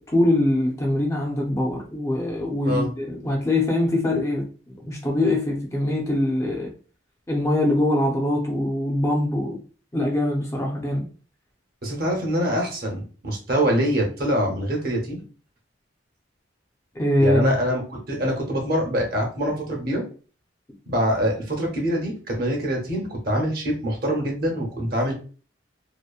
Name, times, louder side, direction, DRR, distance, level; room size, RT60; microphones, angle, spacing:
voice 1, 0.0-6.7 7.3-9.6 9.9-11.1 17.0-17.6, left 1 dB, 15° left, -2 dB, 0.4 m, -23 dB
voice 2, 11.8-15.2 17.2-20.0 20.9-25.1, equal, 50° right, 0 dB, 0.8 m, -24 dB
2.8 x 2.1 x 2.3 m, 0.38 s
head